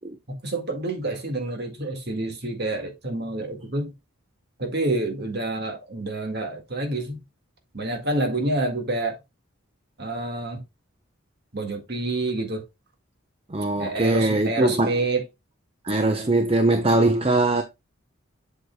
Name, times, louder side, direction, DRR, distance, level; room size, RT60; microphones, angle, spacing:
voice 1, 0.3-3.9 4.6-7.2 7.7-9.2 10.0-10.6 11.5-12.6 13.8-15.3, right 2 dB, 50° right, 1.7 m, -28 dB
voice 2, 13.5-14.9 15.8-17.6, right 2 dB, 25° right, 0.6 m, -21 dB
7.6 x 6.4 x 2.2 m
head